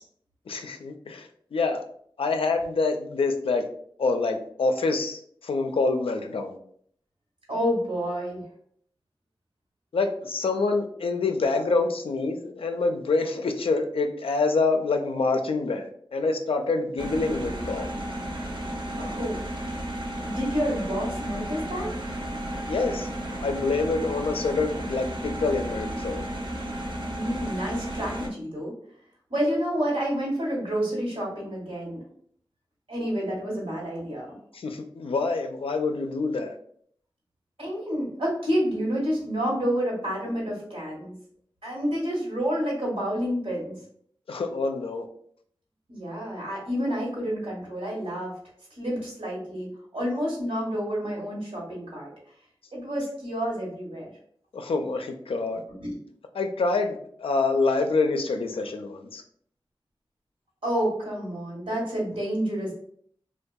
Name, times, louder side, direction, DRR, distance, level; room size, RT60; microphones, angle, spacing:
voice 1, 0.5-1.8 2.2-3.7 4.0-6.6 9.9-17.9 22.7-23.1 23.4-26.2 34.5-36.5 44.3-45.0 54.5-55.6 56.3-59.2, left 3 dB, 75° left, 5 dB, 0.4 m, -26 dB
voice 2, 7.5-8.4 19.0-19.4 20.2-21.9 27.1-28.7 29.3-32.0 32.9-34.3 37.6-41.1 41.6-43.8 45.9-48.3 48.8-52.1 52.7-54.1 55.8-55.9 60.6-62.7, equal, 90° right, -4 dB, 1.2 m, -29 dB
sound 1, 17.0-28.3, right 1 dB, 55° right, 0.5 m, -33 dB
2.6 x 2.2 x 2.2 m, 0.63 s
cardioid pair, 45°, 9 cm